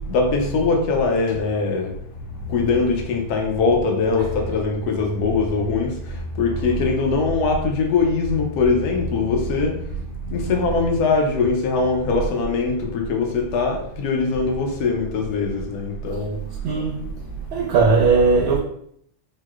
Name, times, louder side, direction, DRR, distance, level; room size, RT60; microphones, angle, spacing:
voice 1, 0.1-1.9 2.5-5.9 6.4-9.7 10.3-16.4, left 4 dB, 70° left, 0.9 m, -22 dB
voice 2, 16.6-17.2 17.5-18.6, right 4 dB, 80° right, 1.4 m, -19 dB
4.5 x 2.0 x 2.3 m
omnidirectional pair, 2.2 m